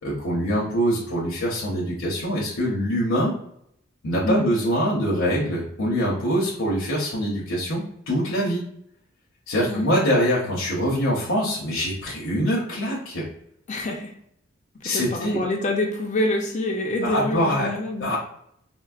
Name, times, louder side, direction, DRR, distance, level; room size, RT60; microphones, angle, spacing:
voice 1, 0.0-3.4 4.0-8.6 9.5-13.2 14.8-15.4 17.0-17.7 18.0-18.2, equal, 65° left, -4 dB, 0.7 m, -24 dB
voice 2, 13.7-14.1 14.8-18.1, left 1 dB, 35° left, 1 dB, 0.5 m, -26 dB
4.4 x 2.0 x 2.3 m, 0.71 s
head